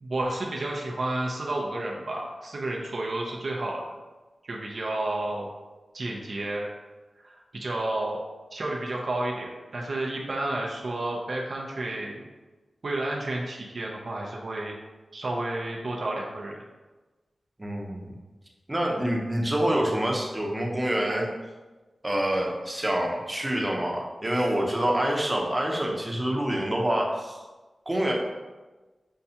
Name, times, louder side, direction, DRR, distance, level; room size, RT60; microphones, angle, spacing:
voice 1, 0.0-3.8 4.4-5.5 5.9-6.7 7.2-8.2 8.5-12.3 12.8-14.7 15.1-16.5, right 2 dB, 65° right, -2 dB, 0.5 m, -31 dB
voice 2, 17.6-18.1 18.7-21.3 22.0-27.4 27.9-28.1, right 1 dB, 20° right, -1 dB, 0.7 m, -26 dB
5.5 x 2.3 x 2.8 m, 1.2 s
wide cardioid pair, 70°, 0 cm